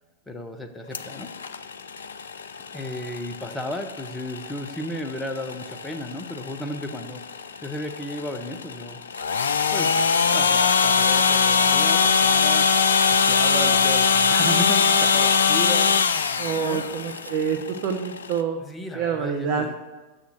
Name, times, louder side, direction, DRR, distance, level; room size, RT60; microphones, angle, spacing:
voice 1, 0.3-1.3 2.7-7.2 7.6-9.0 9.7-9.9 10.3-12.7 13.1-16.3 16.6-16.8 18.6-19.8, left 1 dB, 10° left, 5 dB, 1.0 m, -34 dB
sound 1, 0.9-18.4, left 6 dB, 70° left, 0.4 m, -22 dB
Telephone, 10.6-17.5, right 5 dB, 80° right, 0.4 m, -35 dB
voice 2, 16.4-18.6 18.9-19.8, right 7 dB, 45° right, 4 dB, 0.8 m, -27 dB
7.2 x 6.4 x 7.5 m, 1.2 s
figure-of-eight pair, 90°, 0 cm